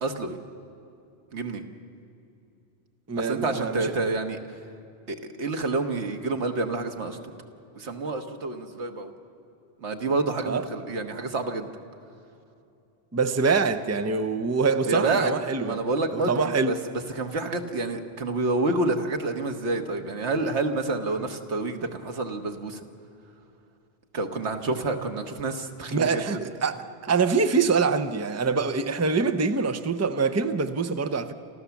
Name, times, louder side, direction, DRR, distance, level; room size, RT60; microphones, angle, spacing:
voice 1, 0.0-0.4 1.3-1.6 3.2-4.4 5.1-7.2 7.7-9.1 9.8-11.7 14.8-15.3 15.6-16.8 17.1-22.8 24.1-26.2, right 3 dB, 90° right, 1.7 m, -28 dB
voice 2, 3.1-4.0 10.5-10.7 13.1-15.8 16.1-16.8 25.9-31.3, right 4 dB, 15° right, 0.6 m, -25 dB
28.0 x 14.5 x 7.1 m
omnidirectional pair, 1.1 m